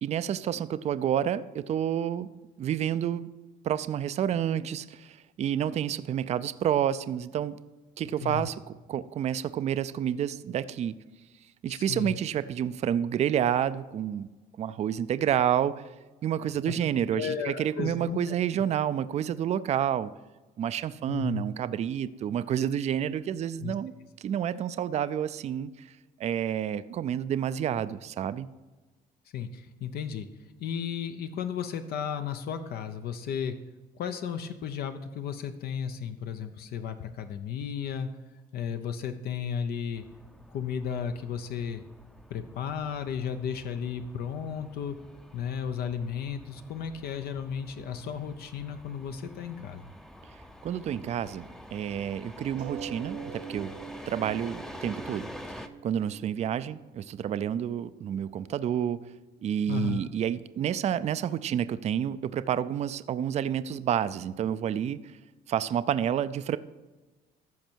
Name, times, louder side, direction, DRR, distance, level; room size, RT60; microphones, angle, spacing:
voice 1, 0.0-2.3 2.6-3.3 3.6-7.6 8.0-10.9 11.6-14.3 14.6-15.8 16.2-20.1 20.6-23.9 24.2-25.9 26.2-28.5 50.6-53.7 54.1-59.0 59.4-65.2 65.5-66.6, right 9 dB, 40° right, 14 dB, 0.4 m, -29 dB
voice 2, 11.7-12.2 17.1-18.4 21.1-21.4 23.6-23.7 29.3-30.3 30.6-33.6 34.0-38.1 38.5-40.0 40.5-41.8 42.3-45.0 45.3-49.9 59.7-60.0, left 7 dB, 65° left, 8 dB, 0.7 m, -34 dB
sound 1, 39.9-55.7, equal, 5° left, 0.6 m, -47 dB
sound 2, 52.6-57.6 58.3-58.4 58.7-58.8, right 6 dB, 80° right, 1.1 m, -44 dB
14.0 x 5.3 x 4.5 m, 1.2 s
cardioid pair, 110°, 17 cm